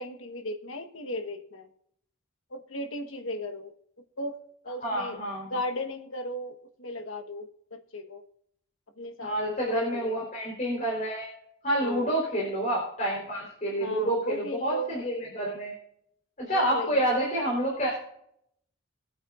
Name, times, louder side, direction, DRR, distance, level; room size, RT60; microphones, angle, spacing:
voice 1, 0.0-1.7 2.5-3.7 4.2-5.2 5.5-8.2 9.0-9.4 9.7-10.2 11.8-12.1 13.8-14.9 16.5-17.0, left 1 dB, 80° left, 6 dB, 1.3 m, -36 dB
voice 2, 4.8-5.5 9.2-11.3 11.6-15.7 16.4-18.0, right 1 dB, 40° left, -4 dB, 3.9 m, -28 dB
23.0 x 8.9 x 2.5 m, 0.71 s
head